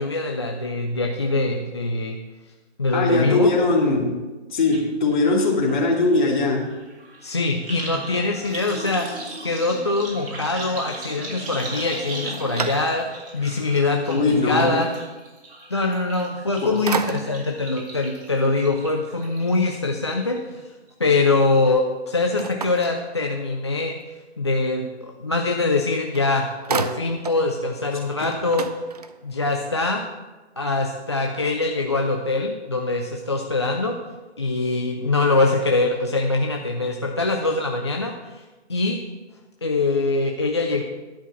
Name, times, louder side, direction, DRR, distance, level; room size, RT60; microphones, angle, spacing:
voice 1, 0.0-2.2 2.8-3.5 7.2-9.1 9.4-14.9 15.7-20.6 21.0-24.0 24.4-28.7 29.2-30.0 30.6-34.0 34.4-38.4 38.7-39.0 39.6-40.8, left 3 dB, 25° left, 2 dB, 0.4 m, -23 dB
voice 2, 2.9-4.2 4.5-6.7 14.1-14.8 16.6-16.7 28.2-28.3, left 3 dB, 45° left, -1 dB, 2.4 m, -20 dB
sound 1, 4.7-4.8 5.1-19.7 20.1-20.6 20.9-21.0, right 2 dB, 55° right, 3.5 m, -37 dB
sound 2, 11.9-13.3 13.9-14.0 16.2-16.5 16.9-17.6 22.4-23.7 25.8-25.9 26.1-27.5 27.8-27.9 28.2-29.4, right 5 dB, 35° right, 0.5 m, -31 dB
11.0 x 5.7 x 7.0 m, 1.2 s
hypercardioid pair, 155°, 34 cm